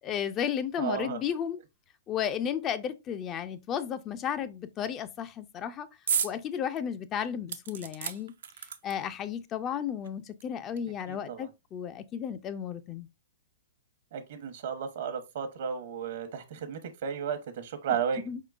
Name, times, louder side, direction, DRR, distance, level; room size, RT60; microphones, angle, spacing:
voice 1, 0.0-1.6 2.1-5.9 6.2-8.3 8.8-13.1 18.3-18.4, left 8 dB, 25° left, 0.3 m, -33 dB
voice 2, 0.8-1.2 10.8-11.5 14.1-18.2, right 7 dB, 65° right, 0.9 m, -34 dB
sound 1, 6.1-6.4 6.8-6.9 7.5-9.2 10.0-10.1 10.4-10.5, right 8 dB, 80° right, 0.5 m, -33 dB
4.4 x 3.7 x 2.4 m
hypercardioid pair, 135°, 0 cm